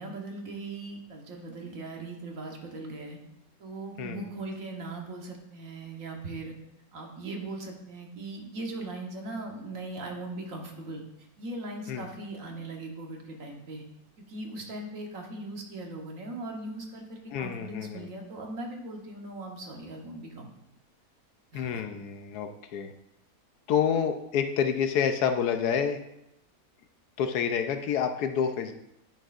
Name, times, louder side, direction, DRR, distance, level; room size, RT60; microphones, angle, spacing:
voice 1, 0.0-3.2 3.6-6.5 6.9-11.0 11.4-13.8 14.3-20.5 21.5-21.8, right 2 dB, 60° right, 1 dB, 1.5 m, -39 dB
voice 2, 17.3-18.1 21.5-22.9 23.7-26.0 27.2-28.7, left 7 dB, 85° left, 7 dB, 1.2 m, -28 dB
11.0 x 6.2 x 2.5 m, 0.85 s
omnidirectional pair, 1.6 m